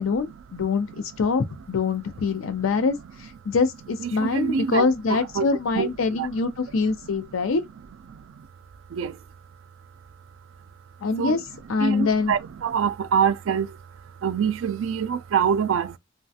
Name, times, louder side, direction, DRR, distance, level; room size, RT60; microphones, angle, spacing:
voice 1, 0.0-0.9 1.2-3.0 3.5-7.6 11.0-11.4 11.7-12.3, left 4 dB, 80° left, 0.5 m, -24 dB
voice 2, 2.1-3.0 4.0-5.5 5.7-6.8 7.0-7.4 8.1-8.5 8.9-9.2 11.2-11.4 11.8-16.0, right 7 dB, 70° right, 0.3 m, -27 dB
3.1 x 2.2 x 2.7 m
head